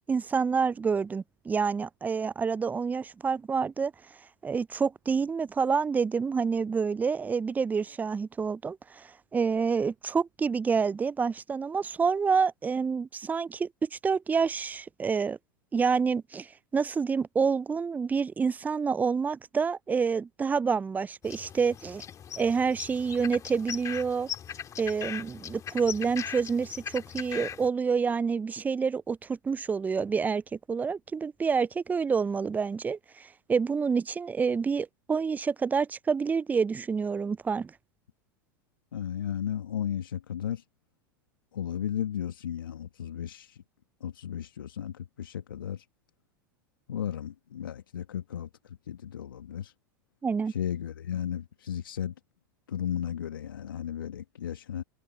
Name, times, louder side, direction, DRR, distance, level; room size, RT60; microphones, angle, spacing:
voice 1, 0.1-3.9 4.4-15.4 15.7-22.0 22.4-24.3 24.8-37.7 50.2-50.5, right 5 dB, 15° right, 0.5 m, -28 dB
sound 1, 21.2-27.7, left 9 dB, 30° left, 1.9 m, -39 dB
voice 2, 38.9-40.6 41.5-43.6 44.0-45.9 46.9-49.7 50.5-52.1 52.7-54.8, left 9 dB, 75° left, 1.8 m, -34 dB
figure-of-eight pair, 90°, 11 cm